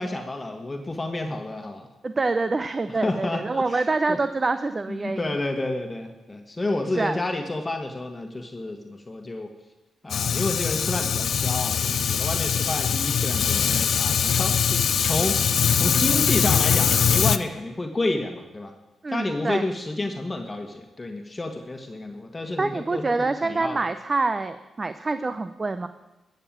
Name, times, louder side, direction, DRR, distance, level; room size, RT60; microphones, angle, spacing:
voice 1, 0.0-1.9 2.9-4.2 4.9-9.5 10.0-15.4 15.7-18.7 19.1-23.8, left 2 dB, 25° left, 4 dB, 1.4 m, -30 dB
voice 2, 2.0-5.3 7.0-7.2 19.0-19.6 22.6-25.9, right 3 dB, 35° right, 11 dB, 0.7 m, -26 dB
Fire, 10.1-17.4, left 7 dB, 70° left, 0.5 m, -22 dB
13.5 x 6.7 x 8.8 m, 1.0 s
cardioid pair, 65°, 0 cm